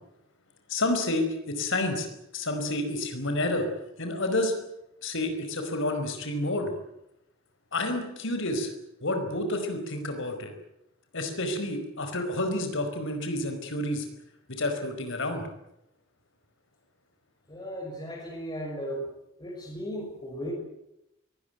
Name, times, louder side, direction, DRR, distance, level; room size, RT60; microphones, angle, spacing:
voice 1, 0.7-2.1 2.3-3.7 4.0-4.5 5.0-6.7 7.7-8.7 9.0-10.5 11.1-14.0 14.6-15.4, left 1 dB, 65° left, 6 dB, 4.9 m, -29 dB
voice 2, 17.5-19.0 19.4-20.5, equal, 20° left, -3 dB, 6.1 m, -36 dB
22.5 x 19.0 x 9.3 m, 0.85 s
head